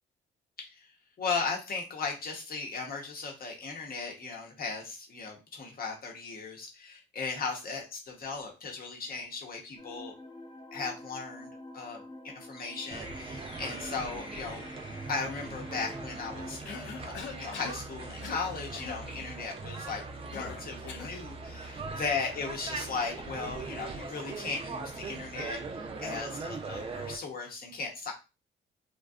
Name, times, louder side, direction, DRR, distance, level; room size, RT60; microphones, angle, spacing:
voice 1, 0.6-0.9 1.2-10.1 10.7-11.5 11.7-14.6 15.1-20.0 20.3-28.1, left 4 dB, 50° left, 1 dB, 0.9 m, -37 dB
sound 1, 9.8-16.6, left 2 dB, 25° left, 0.6 m, -46 dB
sound 2, 12.9-27.2, right 3 dB, 30° right, 0.4 m, -40 dB
Cough, 16.7-17.8 18.2-18.5 18.8-19.0 20.3-21.2, left 6 dB, 70° left, 0.5 m, -42 dB
2.6 x 2.2 x 2.3 m, 0.28 s
cardioid pair, 90°, 20 cm